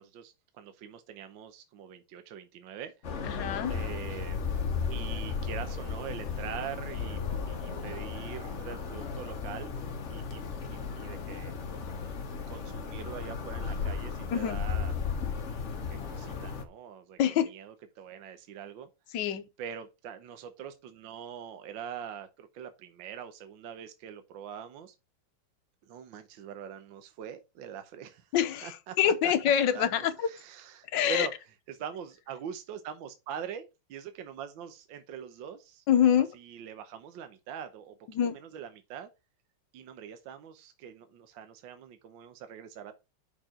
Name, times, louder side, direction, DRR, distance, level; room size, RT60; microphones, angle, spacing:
voice 1, 0.0-3.3 3.7-4.4 4.9-7.2 7.5-9.8 10.1-10.4 10.7-11.5 12.5-14.9 15.7-17.2 17.4-18.9 19.6-24.9 25.9-28.3 28.6-29.0 29.2-29.3 29.7-31.3 31.7-35.8 36.3-37.9 38.2-39.1 39.7-42.9, right 8 dB, 70° right, 1.5 m, -43 dB
sound 1, 3.0-16.6, left 5 dB, 45° left, 1.0 m, -35 dB
voice 2, 3.2-3.7 14.3-14.6 17.2-17.5 19.1-19.4 28.3-30.3 30.9-31.3 35.9-36.3 38.1-38.4, left 9 dB, 65° left, 1.4 m, -25 dB
5.9 x 4.5 x 6.2 m
omnidirectional pair, 2.4 m